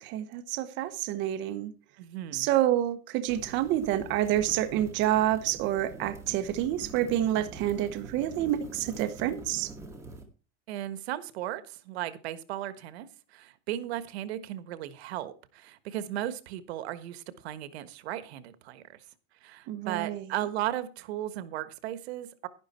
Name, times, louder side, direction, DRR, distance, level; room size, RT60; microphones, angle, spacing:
voice 1, 0.0-1.7 2.3-9.7 19.7-20.3, right 12 dB, 35° right, 1.1 m, -28 dB
voice 2, 2.0-2.5 10.7-19.0 19.4-22.5, right 13 dB, 85° right, 1.4 m, -36 dB
sound 1, 3.3-10.2, right 2 dB, 10° right, 1.9 m, -45 dB
11.5 x 11.0 x 4.3 m
supercardioid pair, 175°, 31 cm